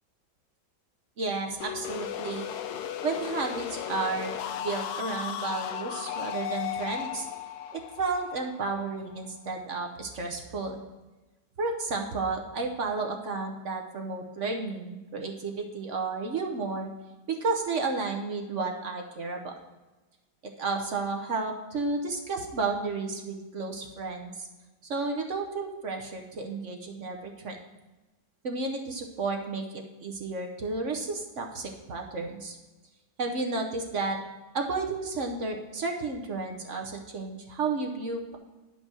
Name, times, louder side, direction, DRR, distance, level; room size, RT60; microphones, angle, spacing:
voice 1, 1.2-2.5 3.0-7.3 7.7-10.8 11.6-16.9 17.3-19.5 20.4-24.5 24.8-27.6 28.4-32.6 33.2-34.2 34.5-38.4, right 3 dB, 50° right, 3 dB, 1.1 m, -32 dB
sound 1, 1.6-9.3, left 9 dB, 75° left, 1.1 m, -35 dB
10.0 x 5.4 x 6.2 m, 1.1 s
omnidirectional pair, 1.8 m